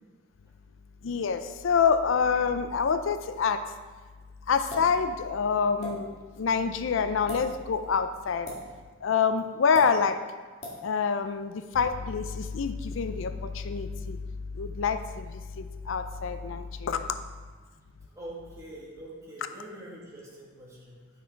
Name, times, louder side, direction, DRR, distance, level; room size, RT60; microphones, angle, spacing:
voice 1, 1.0-3.6 4.5-8.5 9.0-10.2 10.8-14.2 14.5-17.1, left 6 dB, 70° left, 10 dB, 0.4 m, -27 dB
sound 1, 4.7-4.9 5.8-5.9 7.2-7.4 8.4-8.6 9.7-9.9 10.6-10.8, left 2 dB, 35° left, 2.3 m, -37 dB
voice 2, 18.1-21.0, right 1 dB, 15° right, -6 dB, 2.2 m, -45 dB
9.3 x 6.2 x 4.6 m, 1.4 s
head